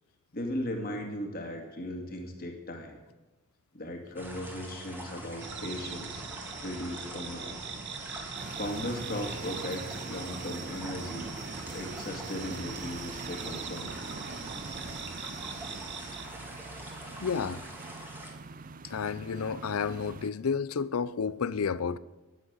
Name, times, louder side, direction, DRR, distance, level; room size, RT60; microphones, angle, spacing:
voice 1, 0.3-3.0 3.7-6.2 6.6-7.5 8.1-11.3 11.7-13.9, left 1 dB, 45° left, 2.2 m, -37 dB
sound 1, 4.2-18.3, right 1 dB, 10° right, 2.2 m, -45 dB
sound 2, 5.4-16.3, right 5 dB, 55° right, 1.1 m, -42 dB
sound 3, 8.4-20.3, right 4 dB, 40° right, 0.5 m, -44 dB
voice 2, 17.2-17.6 18.8-22.0, left 6 dB, 85° left, 0.5 m, -31 dB
10.5 x 9.7 x 8.1 m
head